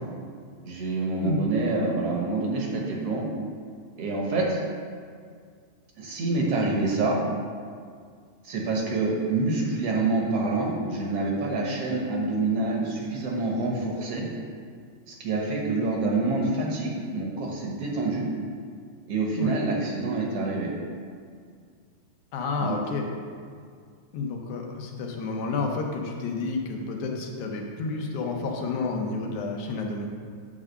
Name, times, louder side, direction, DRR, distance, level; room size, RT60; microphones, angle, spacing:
voice 1, 0.6-3.3 4.0-4.6 6.0-7.2 8.4-14.3 15.1-18.3 19.1-20.7 22.6-22.8, right 3 dB, 65° right, -2 dB, 1.9 m, -27 dB
voice 2, 22.3-23.0 24.1-30.1, left 3 dB, 85° left, 1 dB, 2.3 m, -30 dB
9.4 x 3.7 x 6.6 m, 2.1 s
omnidirectional pair, 3.3 m